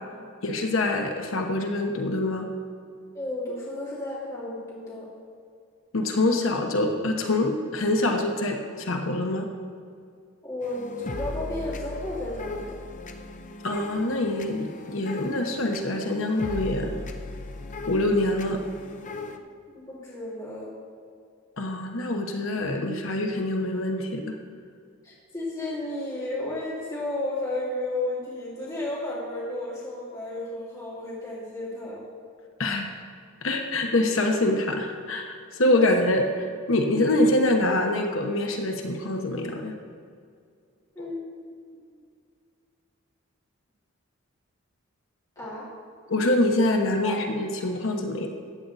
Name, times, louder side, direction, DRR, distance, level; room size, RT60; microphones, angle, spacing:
voice 1, 0.4-2.5 5.9-9.5 13.6-17.0 17.9-18.6 21.6-24.4 32.6-32.9 33.4-39.7 41.0-41.1 46.1-48.3, left 1 dB, 70° left, 3 dB, 1.1 m, -25 dB
voice 2, 3.1-5.1 10.4-12.8 19.7-20.7 25.0-32.0 35.8-35.9 41.0-41.5 45.4-45.7 47.0-47.2, left 2 dB, 15° left, -7 dB, 2.4 m, -33 dB
sound 1, 10.6-19.4, left 2 dB, 40° left, 0.7 m, -37 dB
14.5 x 9.3 x 4.1 m, 2.3 s
head